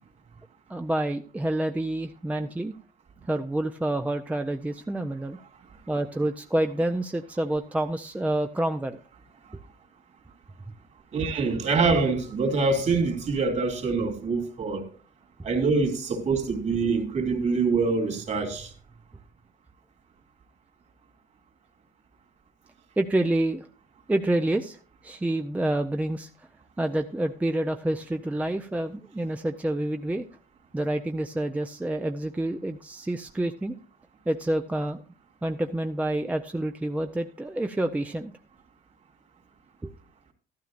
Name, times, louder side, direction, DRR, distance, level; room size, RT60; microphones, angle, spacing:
voice 1, 0.7-2.7 3.3-5.4 5.9-9.0 23.0-23.7 24.1-26.3 26.8-30.2 30.7-33.7 34.3-35.0 35.4-38.3 39.8-39.9, right 1 dB, 10° right, 0.5 m, -28 dB
voice 2, 11.1-14.8 15.4-18.7, right 4 dB, 45° right, 2.7 m, -25 dB
12.5 x 12.5 x 2.5 m
cardioid pair, 110°, 17 cm